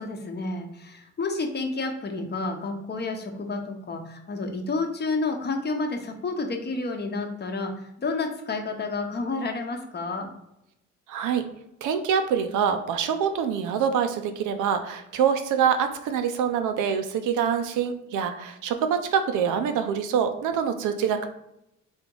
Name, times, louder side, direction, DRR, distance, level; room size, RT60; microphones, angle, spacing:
voice 1, 0.0-10.3, left 3 dB, 35° left, 4 dB, 0.8 m, -30 dB
voice 2, 11.1-11.4 11.8-21.3, right 7 dB, 85° right, 8 dB, 0.6 m, -25 dB
3.6 x 2.9 x 3.7 m, 0.83 s
cardioid pair, 90°, 30 cm